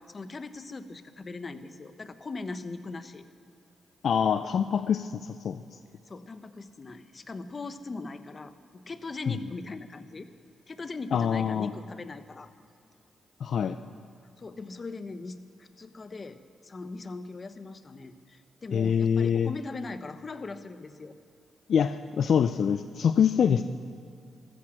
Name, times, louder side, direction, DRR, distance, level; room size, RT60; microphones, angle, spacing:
voice 1, 0.0-3.2 6.1-10.3 10.7-12.5 14.4-16.4 16.6-21.2 23.4-23.6, left 3 dB, 40° left, 11 dB, 1.1 m, -40 dB
voice 2, 4.0-5.6 11.1-11.7 13.4-13.8 18.7-19.5 21.7-23.6, left 7 dB, 65° left, 10 dB, 0.5 m, -25 dB
15.0 x 14.5 x 6.6 m, 2.4 s
supercardioid pair, 50°, 0 cm